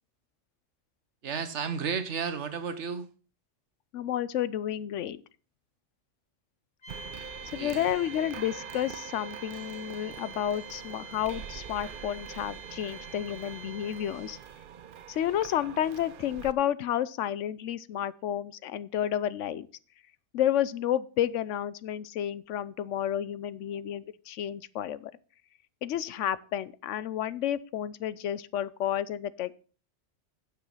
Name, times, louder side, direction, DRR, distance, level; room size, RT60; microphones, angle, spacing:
voice 1, 1.2-3.1 7.6-7.9, right 6 dB, 75° right, 1.3 m, -33 dB
voice 2, 3.9-5.2 7.5-14.4 15.1-19.7 20.3-25.1 25.8-29.5, left 11 dB, 90° left, 1.0 m, -31 dB
sound 1, 6.8-14.5, right 4 dB, 70° left, 2.2 m, -46 dB
sound 2, 6.9-16.5, right 8 dB, 55° right, 0.7 m, -44 dB
9.1 x 7.4 x 5.5 m
omnidirectional pair, 1.2 m